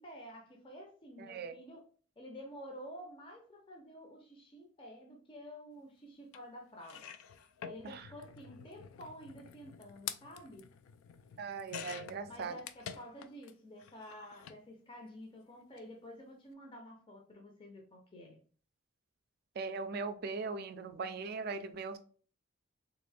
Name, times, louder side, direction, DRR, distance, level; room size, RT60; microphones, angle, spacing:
voice 1, 0.0-1.8 2.2-7.1 7.7-10.7 12.3-18.4, equal, 25° left, 1 dB, 0.5 m, -50 dB
voice 2, 1.2-1.6 7.8-8.1 11.4-12.6 19.6-22.0, right 4 dB, 50° right, 9 dB, 0.4 m, -40 dB
sound 1, 6.3-6.4 6.8-13.5 13.8-14.6 15.6-15.8 16.1-16.2, left 8 dB, 80° left, 0.3 m, -48 dB
3.5 x 2.5 x 3.3 m, 0.42 s
head